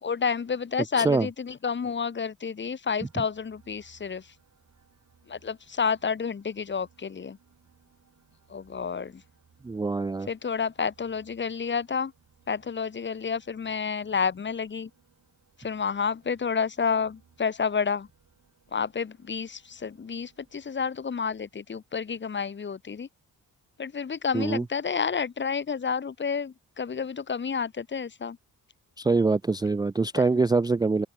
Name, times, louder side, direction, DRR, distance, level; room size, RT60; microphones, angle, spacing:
voice 1, 0.0-4.3 5.3-7.4 8.5-9.2 10.3-12.1 12.5-14.9 15.6-18.1 18.7-23.1 23.8-28.4 30.2-30.3, left 6 dB, 30° left, 0.9 m, -30 dB
voice 2, 0.9-1.3 9.6-10.3 24.3-24.6 29.0-31.1, right 3 dB, 10° right, 0.3 m, -24 dB
sound 1, 2.8-21.5, right 6 dB, 50° right, 5.0 m, -64 dB
cardioid pair, 105°, 35 cm